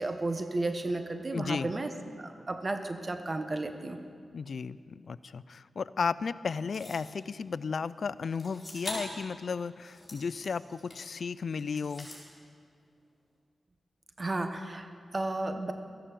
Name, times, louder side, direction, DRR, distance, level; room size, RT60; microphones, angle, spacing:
voice 1, 0.0-1.9 2.2-4.0 14.2-15.7, right 2 dB, 35° right, 7 dB, 1.1 m, -33 dB
voice 2, 1.3-1.7 4.3-12.1, left 5 dB, 65° left, 17 dB, 0.4 m, -34 dB
sound 1, 6.7-7.1 8.3-9.2 9.7-11.2 11.6-12.2, left 1 dB, 30° left, 4.7 m, -42 dB
14.0 x 11.5 x 7.5 m, 2.3 s
cardioid pair, 65°, 0 cm